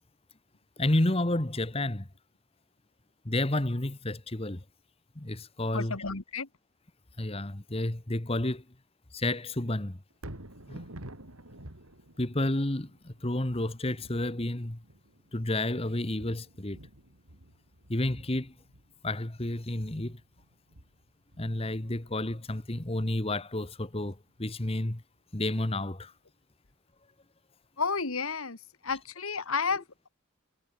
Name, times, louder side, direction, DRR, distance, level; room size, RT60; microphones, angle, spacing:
voice 1, 0.8-2.1 3.2-4.6 5.1-5.9 7.2-8.6 9.1-10.0 10.7-10.8 12.2-14.8 15.3-16.8 17.9-18.5 19.0-20.2 21.4-25.0 25.3-26.1, left 1 dB, 25° left, 1.3 m, -30 dB
voice 2, 5.7-6.5 27.8-28.6 28.8-30.1, left 5 dB, 80° left, 2.1 m, -31 dB
Thunder, 10.1-24.3 24.8-24.9, right 1 dB, 90° right, 4.7 m, -51 dB
head